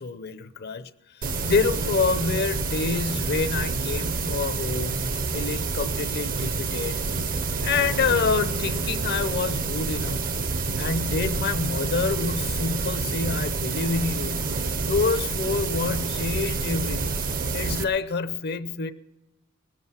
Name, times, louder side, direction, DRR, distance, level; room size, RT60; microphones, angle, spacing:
voice 1, 0.0-7.0 7.6-10.2 10.8-14.4 14.8-17.2 17.5-18.9, left 4 dB, 50° left, 0.7 m, -27 dB
sound 1, 1.2-17.8, right 4 dB, 40° right, 0.7 m, -28 dB
20.5 x 7.7 x 5.7 m
head